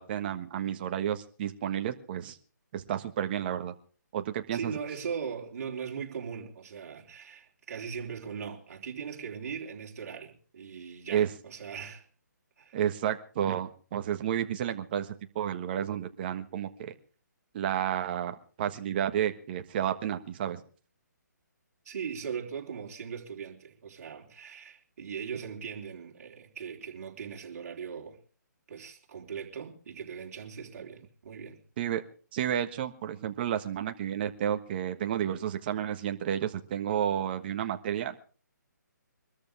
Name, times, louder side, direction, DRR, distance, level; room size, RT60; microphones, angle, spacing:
voice 1, 0.0-2.4 2.7-3.7 4.1-4.7 11.1-11.3 12.7-16.9 17.5-20.6 31.8-32.0 32.3-38.2, right 10 dB, 30° right, 1.5 m, -31 dB
voice 2, 4.5-12.1 12.6-12.8 21.9-28.2 28.7-31.6, right 6 dB, 50° right, 3.7 m, -39 dB
24.5 x 13.5 x 3.5 m
hypercardioid pair, 160°, 10 cm